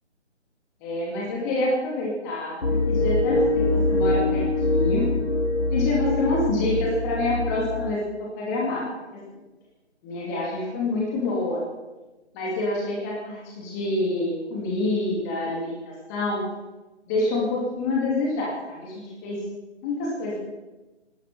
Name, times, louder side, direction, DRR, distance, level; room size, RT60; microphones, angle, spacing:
voice 1, 0.8-4.5 4.7-5.1 5.7-8.0 8.4-8.9 9.1-9.2 10.0-11.6 12.3-16.4 17.1-19.4 19.8-20.4, left 2 dB, 15° left, -4 dB, 2.5 m, -27 dB
sound 1, 2.6-7.9, left 2 dB, 60° left, 4.8 m, -24 dB
15.5 x 12.5 x 6.1 m, 1.1 s
figure-of-eight pair, 160°, 35 cm